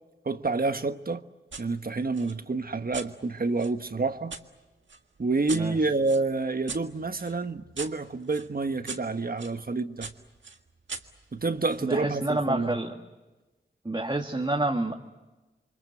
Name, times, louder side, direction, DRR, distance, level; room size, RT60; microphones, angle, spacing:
voice 1, 0.2-1.2 1.6-4.3 5.2-10.1 11.3-12.8, right 3 dB, 50° right, 1.4 m, -28 dB
sound 1, 1.5-1.7 2.1-4.4 4.9-9.6 10.0-11.9, right 4 dB, 80° right, 1.7 m, -42 dB
voice 2, 11.8-13.0 13.8-14.9, right 2 dB, 25° right, 2.0 m, -28 dB
28.5 x 24.0 x 7.9 m
cardioid pair, 45°, 19 cm